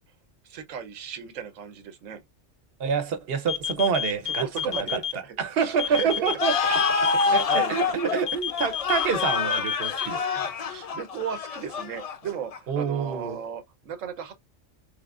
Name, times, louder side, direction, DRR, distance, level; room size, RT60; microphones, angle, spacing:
voice 1, 0.4-2.2 4.2-6.5 7.2-7.8 10.6-14.3, right 7 dB, 85° right, 1.1 m, -35 dB
voice 2, 2.8-5.0 5.4-10.5 12.7-13.4, right 6 dB, 55° right, 0.9 m, -27 dB
sound 1, 3.5-5.1 5.8-7.6 8.3-10.1, left 9 dB, 35° left, 0.7 m, -29 dB
sound 2, 6.4-12.8, left 5 dB, 65° left, 0.3 m, -27 dB
3.6 x 3.2 x 2.3 m
omnidirectional pair, 1.3 m